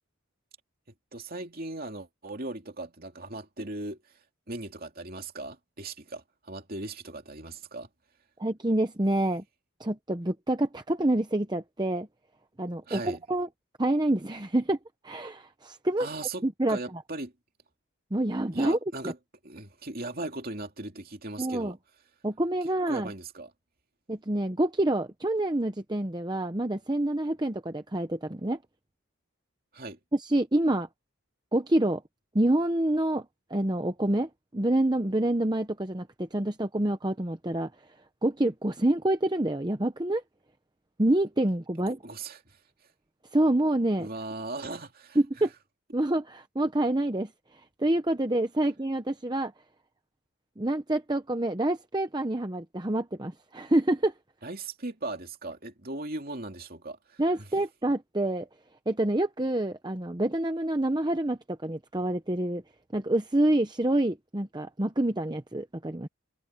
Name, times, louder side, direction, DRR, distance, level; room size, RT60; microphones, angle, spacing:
voice 1, 1.1-7.9 12.9-13.2 16.0-17.3 18.5-19.2 19.4-21.8 22.6-23.5 29.7-30.0 41.9-42.9 44.0-45.5 54.4-57.5, right 2 dB, 40° right, 2.7 m, -38 dB
voice 2, 8.4-9.4 9.8-12.1 12.6-13.5 13.8-14.8 15.0-16.1 16.4-16.8 18.1-18.8 19.0-19.1 21.4-21.7 22.2-23.1 24.1-28.6 30.1-30.9 31.5-32.0 32.3-37.7 38.2-40.2 41.0-42.0 43.3-44.1 45.2-45.5 45.9-49.5 50.6-54.1 57.2-58.5 58.9-62.6 62.9-66.1, right 1 dB, 20° right, 0.8 m, -27 dB
head